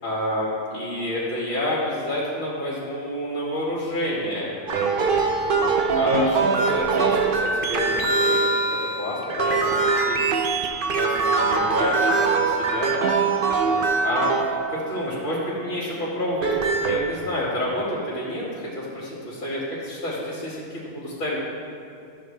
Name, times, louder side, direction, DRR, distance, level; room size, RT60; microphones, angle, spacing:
voice 1, 0.0-4.5 5.5-5.7 5.9-8.4 8.7-10.2 11.0-12.9 13.6-14.3 14.7-16.5 16.9-21.4, left 1 dB, 50° left, -7 dB, 2.2 m, -29 dB
sound 1, 4.7-15.2 16.2-17.0, right 4 dB, 50° right, 0.8 m, -22 dB
13.5 x 6.6 x 3.3 m, 2.6 s
omnidirectional pair, 1.4 m